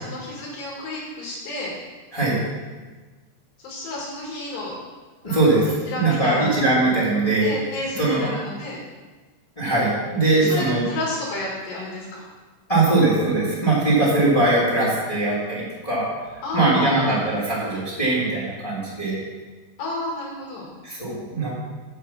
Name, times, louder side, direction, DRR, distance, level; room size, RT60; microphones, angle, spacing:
voice 1, 0.0-1.7 3.6-4.7 5.2-6.6 7.4-8.8 10.4-12.2 16.4-17.1 19.8-20.7, left 2 dB, 80° left, -4 dB, 4.1 m, -31 dB
voice 2, 2.1-2.5 5.2-5.7 6.0-7.5 8.0-8.3 9.6-10.8 12.7-16.1 16.5-19.2 20.8-21.5, right 2 dB, 10° left, -7 dB, 2.1 m, -21 dB
8.1 x 7.7 x 5.8 m, 1.3 s
omnidirectional pair, 4.7 m